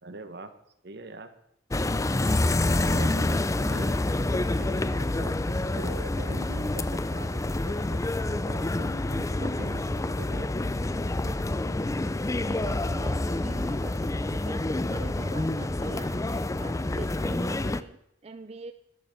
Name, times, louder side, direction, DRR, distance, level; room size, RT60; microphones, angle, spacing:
voice 1, 0.0-0.5 0.8-1.3 2.6-4.0 4.3-10.5 11.2-11.3, right 2 dB, 65° right, 9 dB, 1.3 m, -42 dB
sound 1, 1.7-17.8, left 2 dB, 15° left, 0.5 m, -28 dB
voice 2, 12.5-18.7, right 3 dB, 35° right, 9 dB, 0.5 m, -44 dB
11.5 x 11.0 x 6.8 m, 0.78 s
head